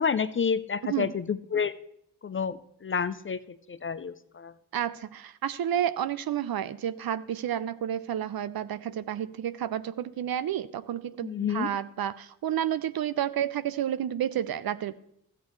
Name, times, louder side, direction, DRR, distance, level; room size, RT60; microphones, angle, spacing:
voice 1, 0.0-1.7 2.2-4.5 11.2-11.7, left 6 dB, 30° left, 14 dB, 0.5 m, -29 dB
voice 2, 4.7-14.9, right 10 dB, 55° right, 15 dB, 0.6 m, -30 dB
13.5 x 8.3 x 3.2 m, 0.73 s
hypercardioid pair, 40°, 44 cm